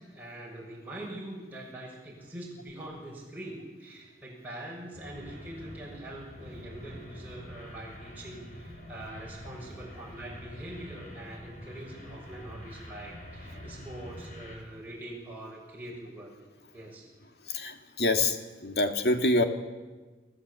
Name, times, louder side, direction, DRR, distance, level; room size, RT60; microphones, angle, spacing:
voice 1, 0.1-16.3 16.7-17.1, right 1 dB, 10° right, -4 dB, 6.5 m, -43 dB
sound 1, 4.9-14.5, equal, 45° left, 7.5 m, -46 dB
voice 2, 17.5-18.4 18.6-19.4, left 2 dB, 65° left, 5 dB, 2.3 m, -25 dB
29.0 x 19.0 x 8.5 m, 1.3 s
head